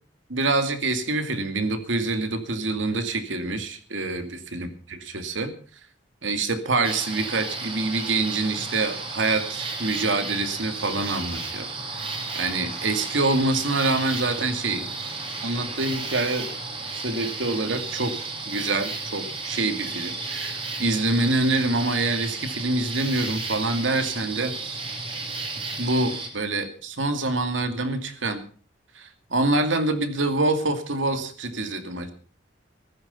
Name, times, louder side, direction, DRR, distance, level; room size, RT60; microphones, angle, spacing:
voice 1, 0.3-5.5 6.2-11.7 12.3-14.9 15.4-16.5 16.9-18.2 18.5-24.8 25.8-28.4 29.0-32.1, right 2 dB, 85° right, 7 dB, 2.4 m, -26 dB
sound 1, 6.8-26.3, right 3 dB, 30° right, 3.4 m, -33 dB
14.5 x 14.0 x 5.6 m, 0.40 s
head